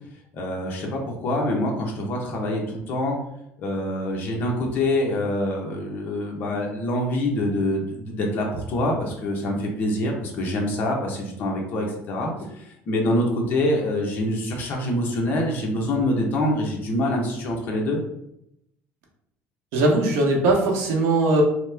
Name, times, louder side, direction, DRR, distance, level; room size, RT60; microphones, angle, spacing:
voice 1, 0.3-3.2 3.6-18.0, left 1 dB, 45° left, 0 dB, 0.7 m, -25 dB
voice 2, 19.7-21.4, right 2 dB, 75° right, 0 dB, 0.8 m, -20 dB
3.0 x 2.0 x 3.3 m, 0.78 s
cardioid pair, 160°, 5 cm